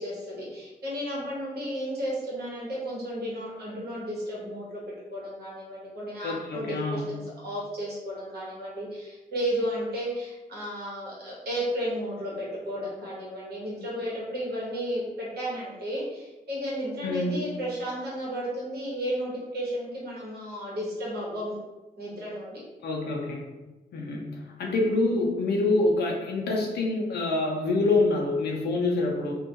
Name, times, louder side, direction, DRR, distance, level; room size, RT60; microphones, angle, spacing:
voice 1, 0.0-4.8 5.1-21.6 22.0-22.6, equal, 80° right, -6 dB, 1.0 m, -33 dB
voice 2, 6.2-7.1 17.0-17.3 22.8-23.5 23.9-29.4, left 2 dB, 85° left, 0 dB, 0.4 m, -26 dB
2.2 x 2.2 x 2.7 m, 1.1 s
wide cardioid pair, 165°, 16 cm